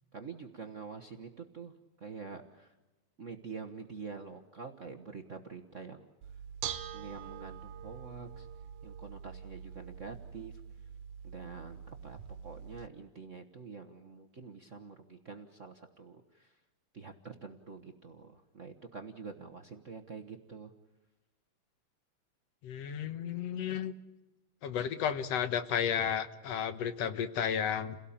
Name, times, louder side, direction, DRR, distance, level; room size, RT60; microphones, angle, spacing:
voice 1, 0.1-2.7 3.2-6.1 6.9-8.5 8.8-10.6 11.2-12.2 12.4-16.6 16.9-20.7, right 5 dB, 65° right, 4 dB, 0.7 m, -46 dB
Bell / Dishes pots and pans, 6.2-12.9, right 8 dB, 85° right, 2.4 m, -45 dB
voice 2, 22.6-23.9 24.6-28.0, left 8 dB, 65° left, 12 dB, 2.1 m, -33 dB
30.0 x 17.5 x 8.7 m, 1.1 s
omnidirectional pair, 3.3 m